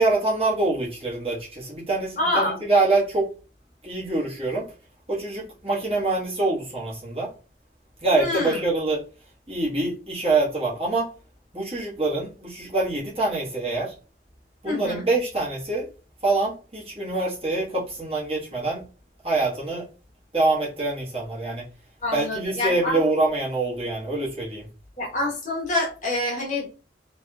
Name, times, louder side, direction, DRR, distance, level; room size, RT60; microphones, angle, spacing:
voice 1, 0.0-3.3 3.8-4.7 5.1-7.3 8.0-9.0 9.5-11.1 11.5-13.9 14.6-15.9 16.2-18.8 19.2-19.9 20.3-21.6 22.1-24.7, right 2 dB, 30° right, 1.3 m, -25 dB
voice 2, 2.2-2.6 8.1-8.6 14.6-15.0 22.0-23.0 25.0-26.8, left 2 dB, 45° left, 1.1 m, -26 dB
3.3 x 2.9 x 2.3 m
head